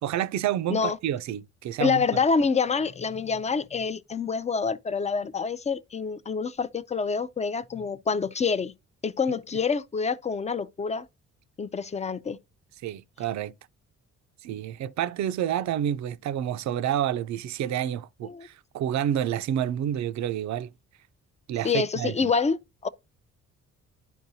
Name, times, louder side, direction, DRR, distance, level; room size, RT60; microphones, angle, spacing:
voice 1, 0.0-2.0 12.8-13.5 14.4-20.7 21.5-22.3, right 10 dB, 65° right, 0.5 m, -29 dB
voice 2, 1.8-8.7 9.0-11.1 11.6-12.4 18.2-18.5 21.6-22.6 22.8-22.9, left 5 dB, 20° left, 0.5 m, -27 dB
11.0 x 4.7 x 2.7 m
cardioid pair, 90°, 30 cm